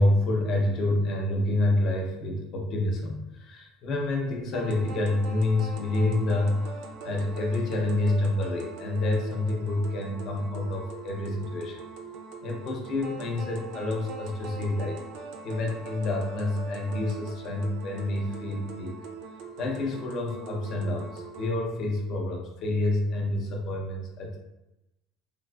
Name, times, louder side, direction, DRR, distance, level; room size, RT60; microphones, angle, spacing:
voice 1, 0.0-11.8 12.4-15.0 15.4-19.0 19.6-24.4, left 2 dB, 35° left, 1 dB, 0.5 m, -28 dB
sound 1, 4.5-21.5, right 4 dB, 55° right, 0.3 m, -42 dB
3.2 x 2.4 x 2.2 m, 0.94 s
cardioid pair, 175°, 0 cm